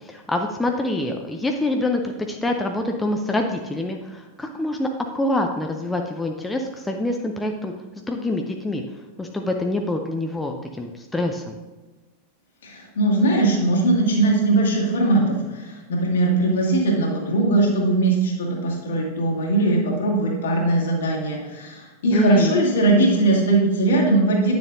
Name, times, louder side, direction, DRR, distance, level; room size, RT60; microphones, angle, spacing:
voice 1, 0.0-7.7 8.1-8.8 9.2-11.6 22.1-22.6, left 1 dB, 10° left, 3 dB, 0.6 m, -26 dB
voice 2, 12.6-24.5, right 2 dB, 65° left, -2 dB, 2.1 m, -20 dB
9.9 x 6.9 x 2.7 m, 1.2 s
figure-of-eight pair, 90°, 0 cm